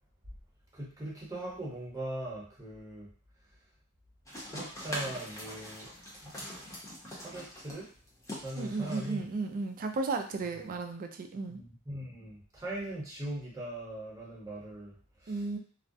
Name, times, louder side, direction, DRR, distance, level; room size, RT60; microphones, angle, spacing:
voice 1, 0.7-3.1 4.4-6.6 7.1-7.9 8.4-9.3 10.4-10.6 11.5-15.6, right 1 dB, 15° right, -5 dB, 0.8 m, -41 dB
sound 1, 4.3-10.7, equal, 15° left, 0.7 m, -43 dB
voice 2, 8.5-11.6 15.3-15.6, right 3 dB, 40° right, 5 dB, 0.3 m, -34 dB
2.3 x 2.1 x 2.6 m, 0.43 s
head